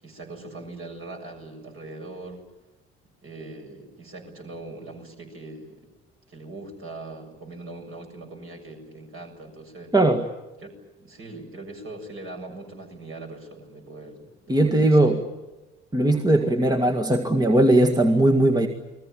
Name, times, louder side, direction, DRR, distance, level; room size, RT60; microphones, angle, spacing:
voice 1, 0.0-2.4 3.2-5.9 6.3-9.9 10.6-10.7 11.0-15.2, right 2 dB, 40° right, 3 dB, 7.3 m, -41 dB
voice 2, 9.9-10.2 14.5-15.2 15.9-18.7, right 1 dB, 10° right, 4 dB, 1.9 m, -19 dB
29.5 x 20.5 x 9.0 m, 1.1 s
figure-of-eight pair, 50°, 33 cm